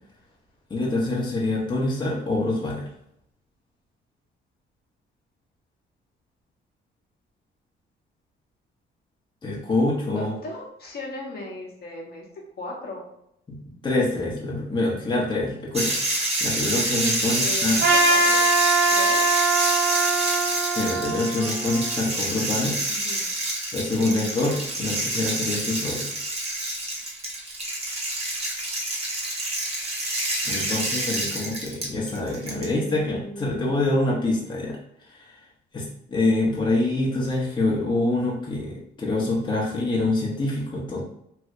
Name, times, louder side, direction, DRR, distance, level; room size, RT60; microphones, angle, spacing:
voice 1, 0.7-2.9 9.4-10.4 13.5-13.6 13.8-15.9 16.4-17.8 20.8-22.8 23.7-26.1 30.4-34.8 35.1-35.4 35.7-41.0, left 2 dB, 25° left, -3 dB, 0.8 m, -25 dB
voice 2, 10.1-12.2 12.6-13.0 17.4-18.6 18.9-19.2 22.9-23.3 32.4-34.0, left 1 dB, 50° left, -1 dB, 1.0 m, -37 dB
sound 1, 15.7-32.6, right 1 dB, 30° right, 1.0 m, -27 dB
Trumpet, 17.8-22.1, right 3 dB, 60° right, 0.7 m, -22 dB
3.2 x 2.7 x 2.6 m, 0.74 s
cardioid pair, 90°, 20 cm